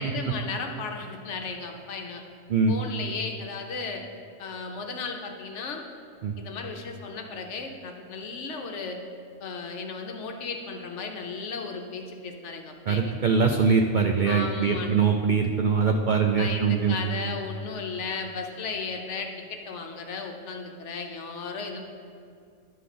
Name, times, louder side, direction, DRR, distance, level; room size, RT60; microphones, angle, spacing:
voice 1, 0.0-2.2 2.7-4.0 4.4-5.8 6.4-9.0 9.4-13.1 14.2-15.0 16.3-21.8, left 4 dB, 65° left, 4 dB, 1.1 m, -35 dB
voice 2, 12.9-17.0, right 5 dB, 70° right, 4 dB, 0.4 m, -22 dB
11.0 x 3.8 x 6.6 m, 2.3 s
omnidirectional pair, 1.4 m